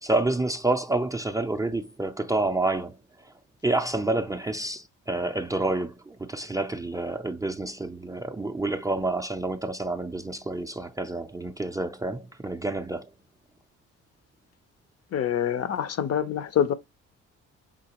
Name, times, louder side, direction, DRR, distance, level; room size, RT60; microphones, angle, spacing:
voice 1, 0.0-3.0 3.6-13.1, right 2 dB, 10° right, 0.4 m, -28 dB
voice 2, 15.1-16.7, left 9 dB, 55° left, 0.6 m, -25 dB
4.8 x 3.7 x 2.8 m
cardioid pair, 90°, 30 cm